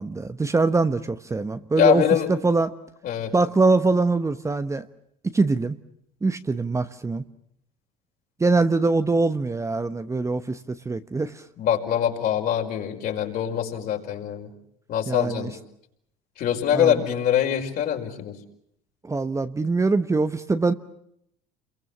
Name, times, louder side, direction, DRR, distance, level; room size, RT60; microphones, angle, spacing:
voice 1, 0.0-2.7 3.3-4.9 5.3-5.8 6.2-7.2 8.4-11.4 15.1-15.5 16.7-17.0 19.0-20.7, right 3 dB, 15° right, 10 dB, 1.1 m, -23 dB
voice 2, 1.8-2.3 3.0-3.3 11.6-14.5 14.9-15.6 16.4-18.4, left 9 dB, 55° left, 2 dB, 5.5 m, -23 dB
29.0 x 23.0 x 7.3 m, 0.72 s
supercardioid pair, 90°, 18 cm